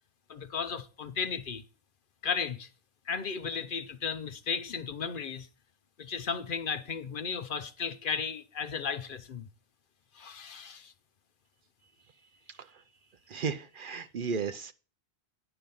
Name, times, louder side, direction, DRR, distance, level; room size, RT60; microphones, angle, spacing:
voice 1, 0.3-1.6 2.2-2.7 3.1-5.5 6.0-9.5 10.1-10.9, left 6 dB, 55° left, 0.8 m, -35 dB
voice 2, 12.5-12.8 13.3-14.7, right 5 dB, 55° right, 0.7 m, -35 dB
9.9 x 6.0 x 5.3 m
omnidirectional pair, 1.1 m